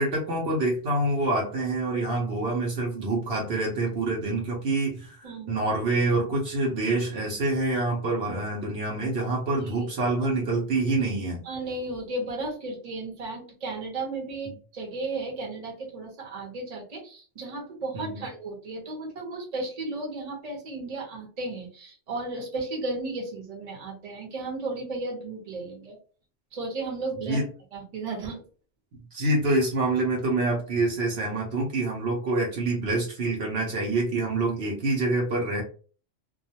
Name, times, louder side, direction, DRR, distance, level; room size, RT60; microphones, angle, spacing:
voice 1, 0.0-11.4 14.5-14.6 17.9-18.2 27.3-27.4 29.1-35.6, right 2 dB, 65° right, -2 dB, 0.9 m, -26 dB
voice 2, 5.2-5.5 9.6-9.9 11.4-26.0 26.5-27.4 27.7-28.4, right 2 dB, 35° right, -1 dB, 0.9 m, -34 dB
2.3 x 2.2 x 2.7 m, 0.39 s
omnidirectional pair, 1.2 m